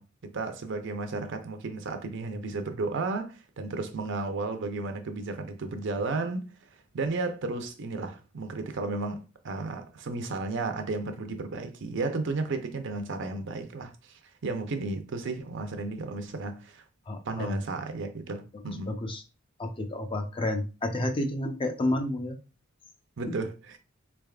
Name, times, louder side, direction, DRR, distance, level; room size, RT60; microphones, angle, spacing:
voice 1, 0.0-6.5 6.9-16.8 17.3-19.0 23.2-23.8, right 3 dB, 65° right, 0.6 m, -33 dB
voice 2, 17.1-17.6 18.9-19.2 19.6-22.4, left 1 dB, 25° left, 0.5 m, -30 dB
4.0 x 3.4 x 2.3 m
head